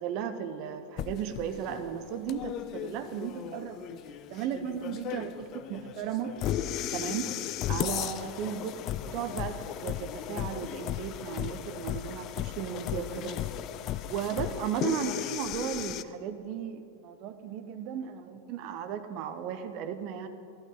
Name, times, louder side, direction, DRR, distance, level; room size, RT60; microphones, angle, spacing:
voice 1, 0.0-6.4 6.9-7.3 7.7-8.8 9.1-13.4 14.1-20.3, right 8 dB, 40° right, 9 dB, 0.8 m, -35 dB
sound 1, 1.0-16.0, left 11 dB, 35° left, 0.4 m, -35 dB
13.5 x 12.0 x 3.8 m, 2.5 s
figure-of-eight pair, 90°, 0 cm